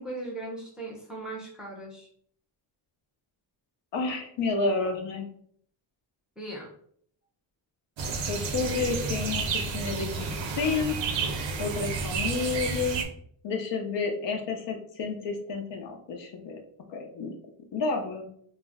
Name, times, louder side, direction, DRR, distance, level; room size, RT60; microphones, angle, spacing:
voice 1, 0.0-2.1 6.4-6.7, right 2 dB, ahead, -3 dB, 0.5 m, -38 dB
voice 2, 3.9-5.3 8.3-11.0 11.6-13.0 13.4-16.6 16.9-17.3 17.7-18.3, left 4 dB, 60° left, 3 dB, 0.7 m, -30 dB
sound 1, 8.0-13.0, right 4 dB, 65° right, 0.6 m, -31 dB
2.4 x 2.1 x 3.4 m, 0.62 s
cardioid pair, 135°, 49 cm